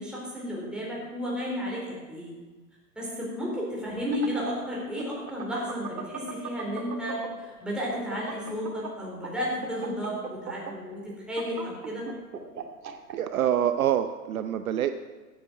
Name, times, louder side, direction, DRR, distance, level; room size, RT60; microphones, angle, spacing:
voice 1, 0.0-2.4 3.0-12.1, equal, ahead, -5 dB, 4.1 m, -33 dB
sound 1, 3.9-7.5 7.8-13.2, right 6 dB, 80° right, 2.1 m, -38 dB
voice 2, 12.8-14.9, right 10 dB, 60° right, 9 dB, 0.7 m, -26 dB
13.0 x 9.0 x 5.7 m, 1.3 s
hypercardioid pair, 135°, 49 cm